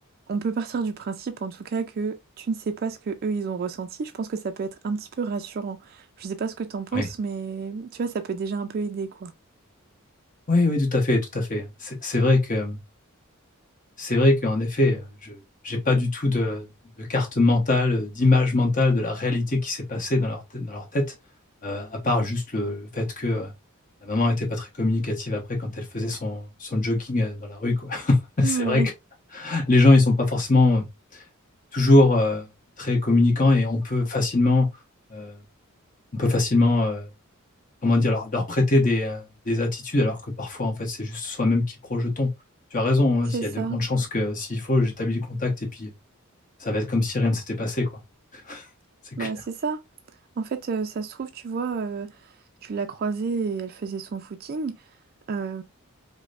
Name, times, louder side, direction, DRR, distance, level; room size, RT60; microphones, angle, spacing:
voice 1, 0.3-9.3 28.4-28.9 43.3-43.8 49.2-49.8 50.4-52.3 52.6-54.8 55.3-55.6, right 5 dB, 45° right, 0.3 m, -30 dB
voice 2, 10.5-12.8 14.0-15.4 15.6-16.7 17.0-21.1 21.6-23.5 24.0-28.9 29.3-30.9 31.1-31.2 31.7-32.5 32.8-34.7 35.1-35.4 36.1-37.1 37.8-42.3 42.7-45.9 46.6-47.9 48.3-48.6 49.2-49.3, left 2 dB, 40° left, 1.1 m, -23 dB
4.9 x 2.1 x 2.5 m
head